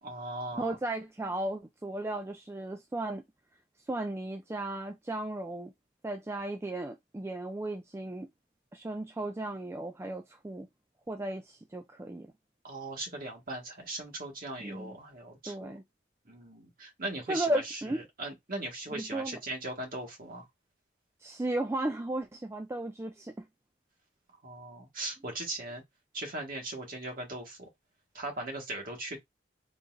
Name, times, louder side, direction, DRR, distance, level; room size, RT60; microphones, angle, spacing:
voice 1, 0.0-0.8 12.6-15.7 16.3-17.6 17.9-20.4 24.4-25.8 26.1-27.7 28.1-29.2, right 2 dB, 50° right, 1.6 m, -39 dB
voice 2, 0.6-3.2 3.9-5.7 6.0-8.3 8.7-10.7 11.1-12.3 14.6-14.9 15.5-15.8 17.3-18.0 18.9-19.4 21.2-23.4, right 1 dB, 15° right, 0.3 m, -35 dB
3.9 x 2.8 x 2.5 m
head